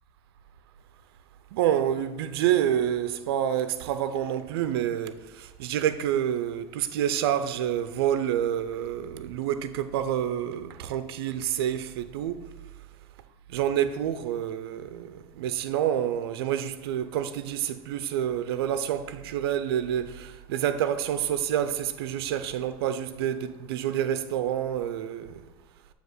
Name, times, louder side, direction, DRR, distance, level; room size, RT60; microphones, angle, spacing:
voice 1, 1.5-12.4 13.5-25.5, right 10 dB, 85° right, 0.5 m, -28 dB
7.6 x 2.9 x 5.9 m
supercardioid pair, 115°, 13 cm